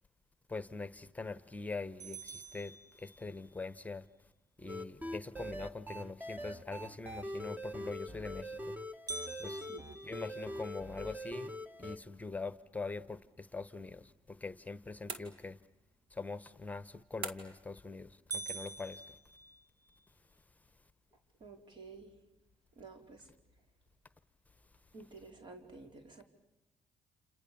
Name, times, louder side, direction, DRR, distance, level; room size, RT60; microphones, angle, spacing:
voice 1, 0.5-4.0 4.6-8.7 9.4-9.6 10.0-11.5 11.8-15.6 16.1-19.0, left 3 dB, 15° left, 1.1 m, -43 dB
sound 1, 2.0-3.6 9.1-11.2 11.7-11.8 12.3-12.4 13.1-13.4 17.0-17.4 17.8-17.9 18.3-20.0, right 3 dB, 40° right, 1.6 m, -46 dB
sound 2, 4.7-12.0, equal, 20° right, 1.6 m, -43 dB
sound 3, 15.1-15.8 17.2-17.7, right 5 dB, 85° right, 2.4 m, -44 dB
voice 2, 21.4-22.1 22.8-23.3 24.9-26.2, right 4 dB, 60° right, 4.7 m, -51 dB
29.0 x 28.5 x 7.0 m
cardioid pair, 80°, 9 cm